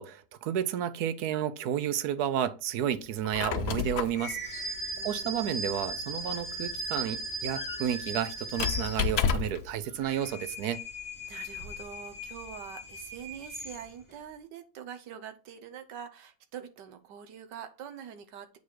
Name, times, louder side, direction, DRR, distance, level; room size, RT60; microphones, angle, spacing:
voice 1, 0.0-4.7 5.0-10.8, right 10 dB, 70° right, 1.1 m, -31 dB
Squeak, 3.1-9.7, left 7 dB, 65° left, 0.6 m, -33 dB
sound 1, 4.1-9.4 9.9-14.1, right 1 dB, 5° left, 1.4 m, -38 dB
voice 2, 5.0-5.5 11.3-18.5, right 8 dB, 85° right, 1.5 m, -44 dB
8.3 x 4.1 x 4.6 m
omnidirectional pair, 1.8 m